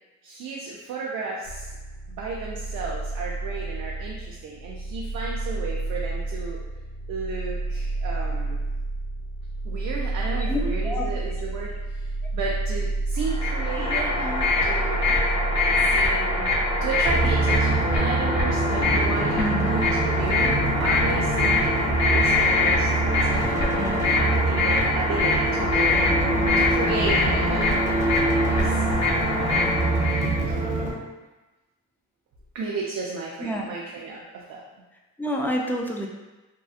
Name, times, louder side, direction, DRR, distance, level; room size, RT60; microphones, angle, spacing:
voice 1, 0.2-1.7 2.1-6.6 7.1-8.6 9.6-14.3 14.6-15.0 15.8-26.3 26.6-27.7 28.5-28.9 29.5-29.8 30.5-30.6 32.5-34.6, right 4 dB, 70° right, -3 dB, 0.5 m, -34 dB
sound 1, 1.4-17.3, right 2 dB, 90° right, 1.0 m, -30 dB
sound 2, 13.2-30.3, left 3 dB, 55° left, 0.9 m, -24 dB
sound 3, 17.1-30.9, right 2 dB, 25° right, 0.8 m, -25 dB
voice 2, 23.8-24.1 33.4-33.6 35.2-36.1, equal, 5° left, -1 dB, 0.3 m, -28 dB
2.7 x 2.2 x 2.4 m, 1.1 s
cardioid pair, 90°, 30 cm